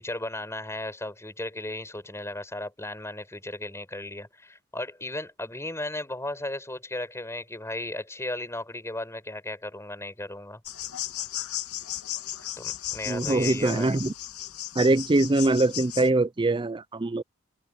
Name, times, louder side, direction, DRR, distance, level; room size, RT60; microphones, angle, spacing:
voice 1, 0.0-10.6 12.6-14.0, left 1 dB, 10° left, 5.6 m, -35 dB
sound 1, 10.7-16.1, left 12 dB, 80° left, 2.5 m, -35 dB
voice 2, 13.1-14.1 14.8-17.2, right 2 dB, 20° right, 0.5 m, -23 dB
head